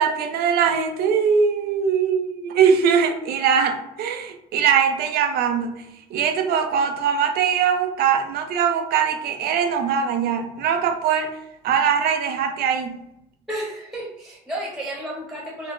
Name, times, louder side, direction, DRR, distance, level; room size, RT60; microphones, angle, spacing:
voice 1, 0.0-11.4 11.6-13.0, right 7 dB, 70° right, 6 dB, 0.5 m, -21 dB
voice 2, 13.5-15.7, right 1 dB, ahead, -4 dB, 0.9 m, -32 dB
3.5 x 2.0 x 2.5 m, 0.85 s
cardioid pair, 110°, 17 cm